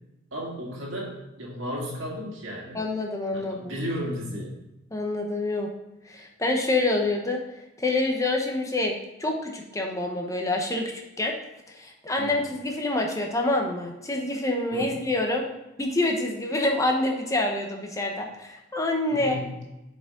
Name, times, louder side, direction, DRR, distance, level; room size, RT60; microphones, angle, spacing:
voice 1, 0.3-2.9 3.3-4.5 12.2-12.4 14.7-15.0 19.1-19.6, equal, 65° right, -4 dB, 2.1 m, -34 dB
voice 2, 2.7-3.8 4.9-5.7 6.1-7.4 7.8-10.9 11.2-11.3 11.7-15.4 15.8-19.4, left 2 dB, 15° left, 1 dB, 0.9 m, -27 dB
7.4 x 5.0 x 3.7 m, 0.96 s
head